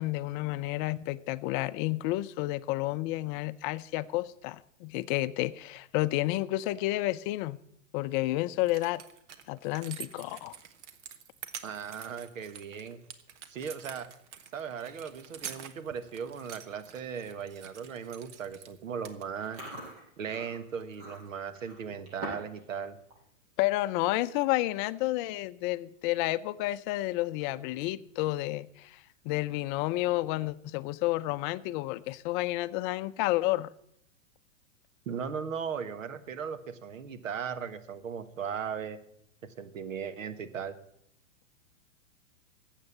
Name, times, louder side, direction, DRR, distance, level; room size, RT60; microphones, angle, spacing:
voice 1, 0.0-7.6 7.9-9.0 9.5-10.6 23.6-33.7, left 17 dB, 40° left, 0.6 m, -30 dB
sound 1, 8.2-8.3 8.6-18.8 19.0-19.7 20.8-21.0, right 9 dB, 65° right, 1.4 m, -47 dB
voice 2, 11.6-13.0 13.5-14.1 14.5-19.6 20.2-23.0 35.0-39.0 39.4-40.7, right 7 dB, 85° right, 1.4 m, -37 dB
Chewing mastication, 19.3-22.6 22.9-23.2 23.6-23.9 24.6-24.7 24.9-25.3 25.7-25.8 27.2-27.8, right 1 dB, 40° right, 7.3 m, -45 dB
12.5 x 8.2 x 8.5 m
hypercardioid pair, 120°, 38 cm